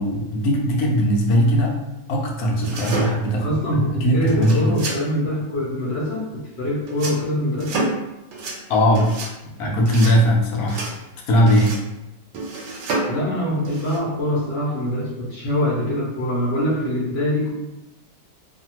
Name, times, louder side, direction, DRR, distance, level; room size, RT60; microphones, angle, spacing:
voice 1, 0.0-1.7 2.1-4.7 8.7-9.1 9.6-10.8 11.3-11.7, equal, 70° left, -1 dB, 1.1 m, -19 dB
sound 1, 2.6-3.4 4.3-5.0 6.9-7.2 7.6-8.1 8.3-8.6 9.0-9.3 9.9-10.2 10.7-11.0 11.5-11.9 12.3-13.2 13.7-14.0, right 3 dB, 85° right, 1.2 m, -28 dB
voice 2, 3.3-7.9 13.0-17.5, left 1 dB, 50° left, -5 dB, 1.0 m, -24 dB
2.8 x 2.5 x 2.8 m, 0.95 s
omnidirectional pair, 1.8 m